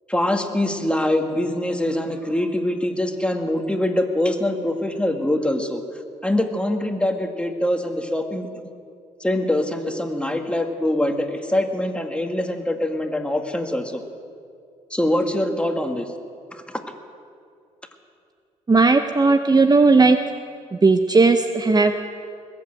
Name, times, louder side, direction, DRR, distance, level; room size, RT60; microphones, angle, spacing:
voice 1, 0.1-5.8 6.2-8.5 9.2-14.0 14.9-16.1 16.5-16.8, left 1 dB, 5° left, 4 dB, 2.0 m, -23 dB
voice 2, 18.7-20.2 20.7-22.0, right 3 dB, 25° right, 8 dB, 0.8 m, -16 dB
20.5 x 8.6 x 7.8 m, 2.4 s
hypercardioid pair, 50°, 16 cm